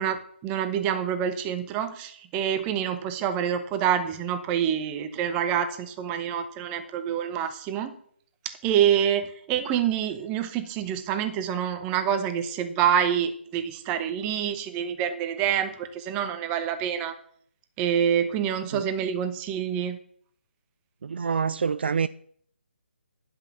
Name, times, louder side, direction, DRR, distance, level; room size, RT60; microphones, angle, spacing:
voice 1, 0.0-7.9 8.6-17.1 17.8-20.0, right 9 dB, 15° right, 0.9 m, -27 dB
voice 2, 21.0-22.1, right 6 dB, 55° right, 0.4 m, -26 dB
10.5 x 5.7 x 6.9 m
figure-of-eight pair, 145°, 7 cm